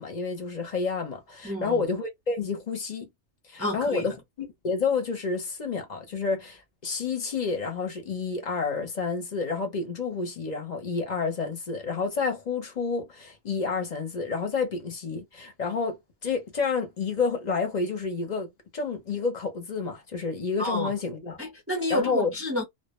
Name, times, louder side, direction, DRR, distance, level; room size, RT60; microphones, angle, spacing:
voice 1, 0.0-3.1 3.5-16.0 16.2-21.4 21.9-22.3, left 4 dB, 45° left, 0.7 m, -29 dB
voice 2, 1.4-1.9 3.6-4.1 20.6-20.9 21.4-22.6, left 1 dB, 20° right, 0.4 m, -29 dB
2.1 x 2.0 x 2.9 m
omnidirectional pair, 1.3 m